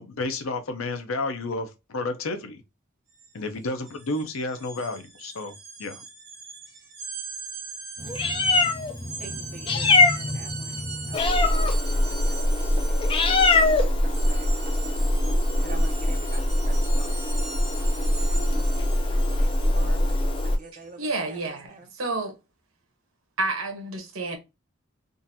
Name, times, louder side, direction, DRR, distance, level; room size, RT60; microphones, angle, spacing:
voice 1, 0.0-2.6 3.3-6.0, left 2 dB, 80° left, 0.6 m, -31 dB
sound 1, 3.1-3.3 3.6-20.8, right 4 dB, 55° right, 1.4 m, -40 dB
Meow, 8.0-20.5, left 2 dB, 25° left, 0.4 m, -23 dB
voice 2, 9.2-11.7 12.3-12.5 12.9-13.1 14.3-14.5 15.6-17.1 17.8-18.0 18.3-18.7 19.1-21.0 21.3-21.4 21.7-21.9, right 3 dB, 40° right, 1.0 m, -46 dB
voice 3, 21.0-22.4 23.4-24.4, right 2 dB, 80° right, 1.0 m, -30 dB
3.8 x 2.5 x 2.7 m
head